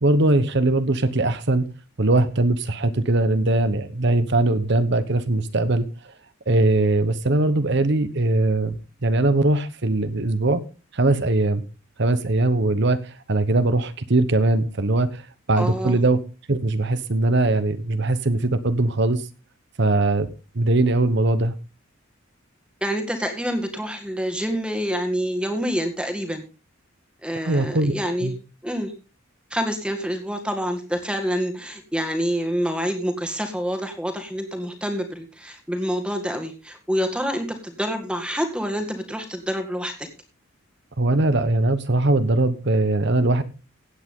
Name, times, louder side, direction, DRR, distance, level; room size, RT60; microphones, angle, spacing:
voice 1, 0.0-1.7 2.0-5.8 6.5-10.6 10.9-11.6 12.0-16.2 16.5-19.2 19.8-20.3 20.5-21.6 27.4-27.9 28.2-28.4 41.0-43.4, right 2 dB, 55° right, 12 dB, 1.1 m, -21 dB
voice 2, 15.6-16.0 22.8-26.4 27.2-28.3 28.6-28.9 29.5-40.1, equal, 5° right, 5 dB, 1.9 m, -27 dB
16.0 x 8.7 x 3.8 m, 0.33 s
head